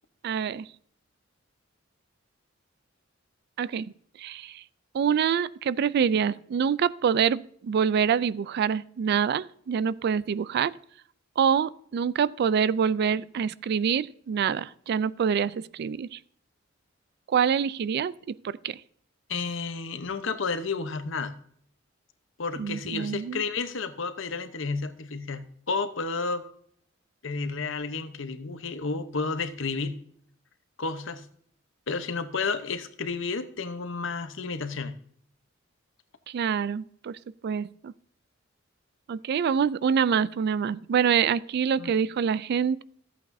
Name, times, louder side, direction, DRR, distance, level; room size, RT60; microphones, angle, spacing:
voice 1, 0.2-0.7 3.6-3.9 4.2-4.6 4.9-10.7 11.4-16.2 17.3-18.8 22.6-23.4 36.3-37.9 39.1-42.8, right 7 dB, 55° right, 0.3 m, -26 dB
voice 2, 19.3-21.4 22.4-26.4 27.2-30.0 30.8-31.3 31.9-35.0 41.8-41.9, left 4 dB, 70° left, 0.8 m, -31 dB
14.0 x 8.5 x 2.6 m
head